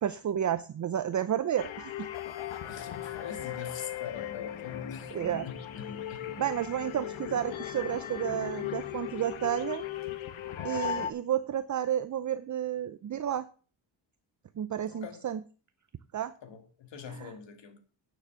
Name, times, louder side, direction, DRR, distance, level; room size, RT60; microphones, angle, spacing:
voice 1, 0.0-2.1 5.1-5.5 6.4-9.8 10.6-13.5 14.6-15.4 16.1-16.3 17.1-17.3, right 10 dB, 40° right, 0.6 m, -31 dB
sound 1, 1.6-11.1, left 11 dB, 80° left, 1.4 m, -38 dB
voice 2, 2.7-5.2 5.4-6.4 14.9-15.2 16.4-17.8, left 7 dB, 65° left, 2.2 m, -44 dB
sound 2, 4.1-10.2, left 7 dB, 45° left, 1.1 m, -45 dB
9.1 x 7.2 x 7.0 m
wide cardioid pair, 145°, 47 cm